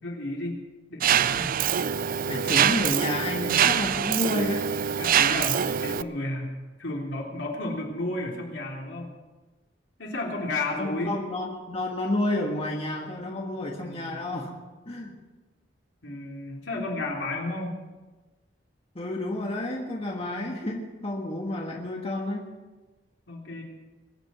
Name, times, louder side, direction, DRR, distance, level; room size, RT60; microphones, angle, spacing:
voice 1, 0.0-0.6 0.9-1.6 2.5-2.8 5.0-6.5 6.8-9.1 10.0-11.1 13.8-14.2 16.0-17.8 23.3-23.6, left 2 dB, 75° left, -1 dB, 3.5 m, -32 dB
Mechanisms, 1.0-6.0, right 9 dB, 50° right, 0.4 m, -24 dB
voice 2, 2.3-4.7 10.8-14.5 14.8-15.1 18.9-22.5, left 1 dB, 35° left, 0 dB, 1.7 m, -30 dB
22.5 x 8.9 x 6.2 m, 1.2 s
head